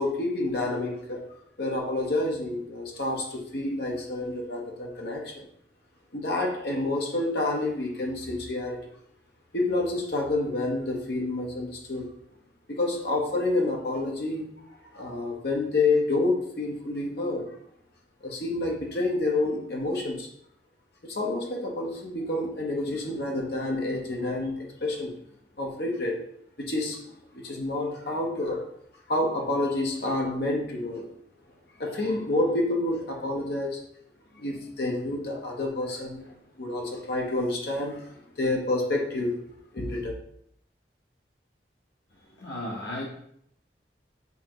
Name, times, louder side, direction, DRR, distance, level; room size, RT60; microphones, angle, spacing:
voice 1, 0.0-5.4 6.1-8.9 9.5-12.1 12.7-14.5 14.9-17.5 18.2-20.3 21.0-25.1 25.6-26.2 26.6-27.0 27.3-28.7 29.1-31.1 31.8-33.8 34.3-39.4 39.7-40.1, left 2 dB, 65° left, 0 dB, 1.2 m, -29 dB
voice 2, 42.4-43.0, left 1 dB, 90° left, -3 dB, 1.2 m, -34 dB
8.4 x 3.8 x 3.1 m, 0.69 s
head